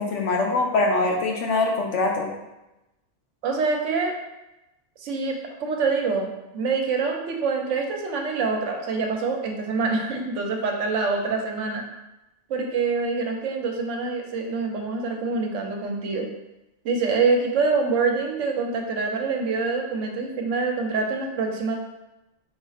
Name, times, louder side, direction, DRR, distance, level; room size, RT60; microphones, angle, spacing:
voice 1, 0.0-2.3, left 3 dB, 70° left, 1 dB, 1.0 m, -23 dB
voice 2, 3.4-4.1 5.0-11.8 12.5-16.3 16.8-21.8, right 4 dB, 75° right, 2 dB, 1.0 m, -25 dB
4.2 x 2.4 x 4.0 m, 0.96 s
omnidirectional pair, 1.3 m